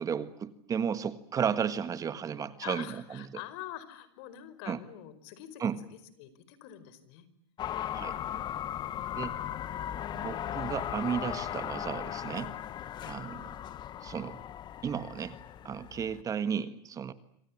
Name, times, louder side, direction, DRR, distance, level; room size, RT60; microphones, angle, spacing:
voice 1, 0.0-3.2 4.7-4.8 5.6-5.8 7.9-8.2 9.2-9.4 10.1-12.5 13.0-13.5 14.0-14.4 14.8-15.4 15.6-17.1, right 7 dB, 25° right, 12 dB, 1.6 m, -33 dB
voice 2, 2.6-7.3 8.9-9.7 12.9-13.1, left 12 dB, 60° left, 14 dB, 5.1 m, -46 dB
sound 1, 7.6-16.2, left 10 dB, 30° left, 1.4 m, -37 dB
27.0 x 25.5 x 7.4 m, 0.74 s
supercardioid pair, 135°, 14 cm